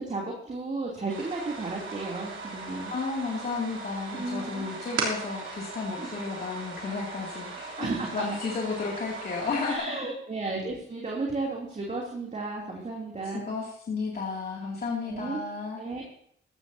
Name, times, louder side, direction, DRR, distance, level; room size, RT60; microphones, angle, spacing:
voice 1, 0.0-2.9 4.1-4.7 6.0-6.1 7.8-8.1 9.6-13.5 15.0-15.4 15.8-16.0, right 3 dB, 35° right, -3 dB, 3.0 m, -33 dB
sound 1, 1.1-9.8, right 3 dB, 65° right, 3.2 m, -38 dB
voice 2, 2.9-10.1 13.5-15.8, left 4 dB, 50° left, -3 dB, 2.6 m, -33 dB
15.0 x 13.0 x 2.8 m, 0.68 s
cardioid pair, 75°, 21 cm